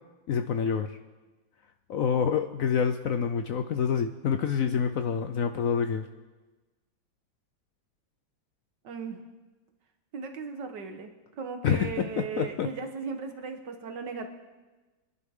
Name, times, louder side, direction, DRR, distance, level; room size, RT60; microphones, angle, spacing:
voice 1, 0.3-0.9 1.9-6.1 11.6-12.7, left 7 dB, 70° left, 8 dB, 0.8 m, -27 dB
voice 2, 8.8-9.2 10.1-14.3, right 5 dB, 75° right, 5 dB, 1.9 m, -37 dB
24.5 x 11.0 x 3.7 m, 1.2 s
omnidirectional pair, 1.9 m